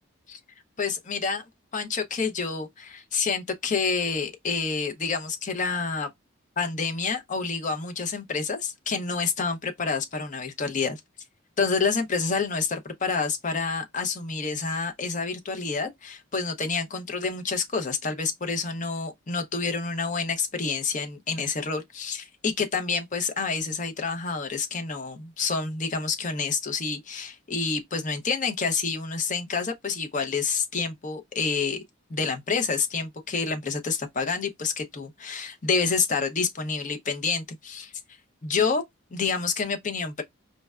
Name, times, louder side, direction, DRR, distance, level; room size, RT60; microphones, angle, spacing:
voice 1, 0.8-1.4 1.7-6.1 6.6-11.0 11.6-31.8 32.1-37.9 38.4-38.8 39.1-40.2, left 4 dB, 35° left, 0.6 m, -28 dB
5.1 x 2.1 x 2.3 m
head